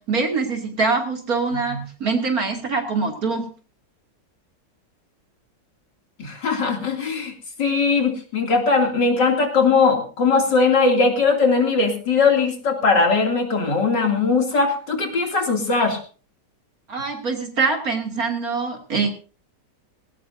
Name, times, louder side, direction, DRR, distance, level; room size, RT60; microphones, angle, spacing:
voice 1, 0.0-3.5 16.9-19.1, right 4 dB, 55° right, 2 dB, 3.1 m, -24 dB
voice 2, 6.2-7.3 7.6-16.0, left 4 dB, 90° left, 3 dB, 3.4 m, -19 dB
19.5 x 17.5 x 2.7 m, 0.37 s
omnidirectional pair, 1.8 m